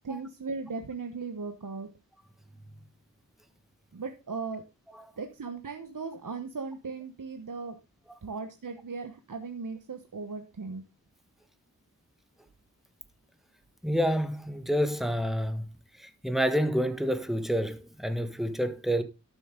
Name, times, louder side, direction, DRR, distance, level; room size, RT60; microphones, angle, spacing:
voice 1, 0.0-1.9 3.9-4.6 5.2-7.8 8.2-10.8, right 4 dB, 65° right, 1.1 m, -37 dB
voice 2, 13.8-15.7 16.0-19.0, equal, ahead, 1.4 m, -28 dB
12.5 x 7.1 x 3.8 m
wide cardioid pair, 65°, 34 cm